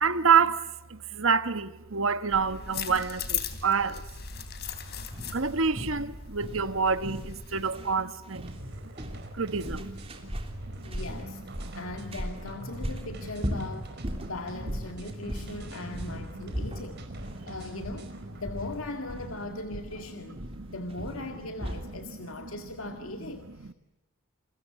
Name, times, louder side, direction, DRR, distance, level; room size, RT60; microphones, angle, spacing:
voice 1, 0.0-0.6 0.9-4.0 5.2-8.5 9.3-9.9 10.7-10.8 11.6-11.8 14.2-14.3 17.4-17.5 20.3-20.7 21.8-22.7 23.6-23.7, right 6 dB, 70° right, 1.3 m, -28 dB
sound 1, 2.3-7.7, left 7 dB, 50° left, 3.1 m, -38 dB
sound 2, 5.1-22.0, equal, 30° right, 3.4 m, -38 dB
sound 3, 8.4-18.8, right 1 dB, 50° right, 4.7 m, -43 dB
voice 2, 10.8-11.5 11.8-20.4 20.7-23.7, left 2 dB, 75° left, 2.0 m, -39 dB
29.0 x 22.5 x 8.6 m
head